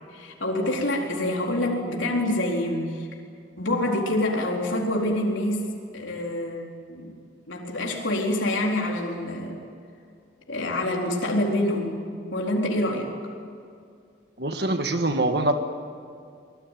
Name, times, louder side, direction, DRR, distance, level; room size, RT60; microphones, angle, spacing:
voice 1, 0.1-3.1 3.6-7.1 7.5-9.6 10.5-13.1, left 1 dB, 85° left, -1 dB, 4.2 m, -26 dB
voice 2, 14.4-15.5, right 2 dB, 55° right, 6 dB, 1.8 m, -24 dB
25.0 x 21.0 x 9.3 m, 2.3 s
head